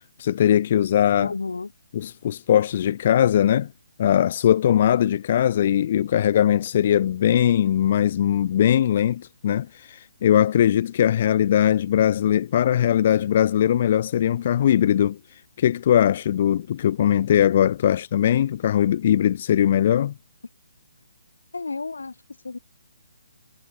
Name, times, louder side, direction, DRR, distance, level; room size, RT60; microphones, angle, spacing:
voice 1, 0.0-1.3 1.9-3.7 4.0-15.2 15.6-20.1, left 10 dB, 40° left, 0.5 m, -20 dB
voice 2, 1.2-1.7 21.5-22.2 22.4-22.6, left 3 dB, 70° left, 0.8 m, -31 dB
figure-of-eight pair, 140°, 0 cm